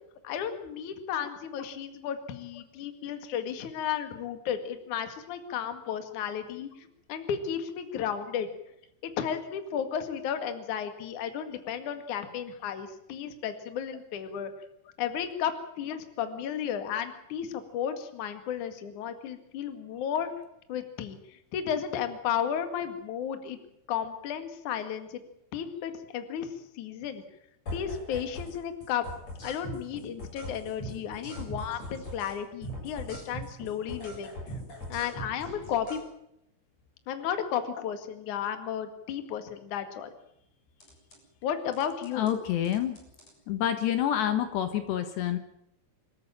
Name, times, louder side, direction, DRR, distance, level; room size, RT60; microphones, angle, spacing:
voice 1, 0.2-8.5 9.0-14.5 15.0-20.3 20.7-23.6 23.9-25.2 25.5-27.2 27.7-29.1 29.4-34.3 34.9-36.0 37.1-40.1 41.4-42.3, left 8 dB, 50° left, 8 dB, 2.8 m, -33 dB
sound 1, 27.7-28.6 28.8-32.4 32.6-36.0 40.8-41.2 41.7-42.3 42.6-43.3, equal, 35° left, 8.2 m, -40 dB
voice 2, 42.1-43.0 43.5-45.4, left 10 dB, 70° left, 9 dB, 3.4 m, -28 dB
26.5 x 14.0 x 8.9 m, 0.80 s
omnidirectional pair, 5.4 m